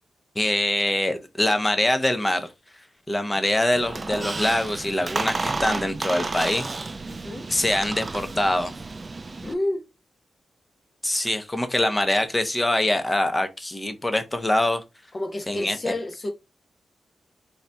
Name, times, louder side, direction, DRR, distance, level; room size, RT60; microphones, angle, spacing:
voice 1, 0.3-2.5 3.1-6.7 7.5-8.7 11.0-14.8 15.5-15.9, left 1 dB, 20° left, 0.9 m, -24 dB
Squeak, 3.7-9.5, right 3 dB, 40° right, 0.4 m, -31 dB
voice 2, 7.1-7.5 9.4-9.9 15.1-16.3, left 1 dB, 40° left, 1.1 m, -30 dB
3.9 x 2.8 x 3.4 m
cardioid pair, 60°, 0 cm